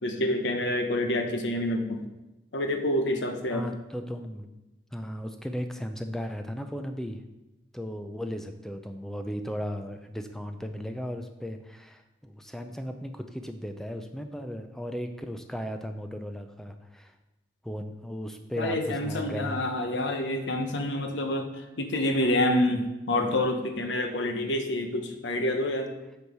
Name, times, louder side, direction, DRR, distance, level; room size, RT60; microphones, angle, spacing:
voice 1, 0.0-2.0 2.5-3.7 18.6-25.9, left 1 dB, 80° left, 5 dB, 0.9 m, -27 dB
voice 2, 3.5-4.5 4.9-7.2 7.7-17.1 17.6-19.6, equal, ahead, 6 dB, 0.4 m, -36 dB
8.1 x 4.6 x 4.8 m, 1.0 s
head